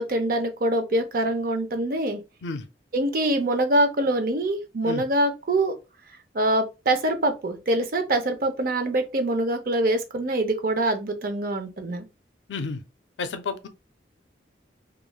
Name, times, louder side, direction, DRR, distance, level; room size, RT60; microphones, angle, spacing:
voice 1, 0.0-2.2 2.9-5.7 6.3-12.0, right 1 dB, 55° right, 0.5 m, -24 dB
voice 2, 12.5-12.8 13.2-13.7, left 4 dB, 85° left, 0.4 m, -31 dB
3.0 x 2.4 x 2.2 m
head